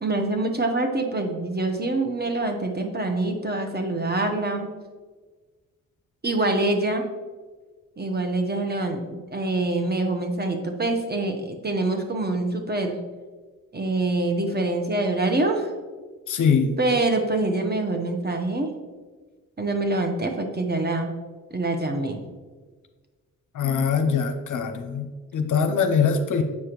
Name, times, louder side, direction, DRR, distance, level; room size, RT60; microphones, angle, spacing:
voice 1, 0.0-4.7 6.2-7.0 8.0-13.0 13.7-15.7 16.8-18.7 19.6-21.1 21.5-22.2, right 2 dB, 25° right, 4 dB, 1.1 m, -25 dB
voice 2, 16.3-16.7 23.5-25.1 25.3-26.4, left 6 dB, 55° left, 7 dB, 0.7 m, -22 dB
7.2 x 4.9 x 3.0 m, 1.4 s
hypercardioid pair, 40°, 38 cm